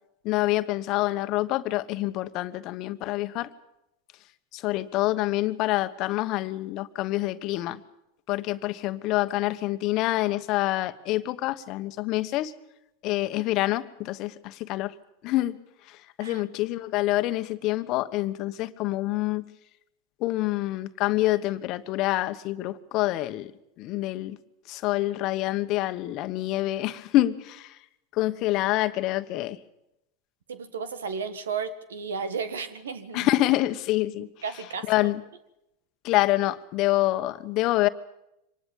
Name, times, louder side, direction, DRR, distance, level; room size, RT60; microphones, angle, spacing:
voice 1, 0.2-3.5 4.5-7.8 8.3-12.5 13.0-14.9 15.2-15.6 15.9-19.4 20.2-23.5 23.8-24.4 24.7-27.8 28.1-29.6 33.1-34.3 34.9-35.2 36.0-37.9, left 17 dB, 50° left, 11 dB, 1.2 m, -26 dB
voice 2, 30.5-33.3 34.4-35.1, right 5 dB, 85° right, 12 dB, 1.7 m, -33 dB
24.5 x 19.5 x 7.3 m, 0.86 s
hypercardioid pair, 95°, 0 cm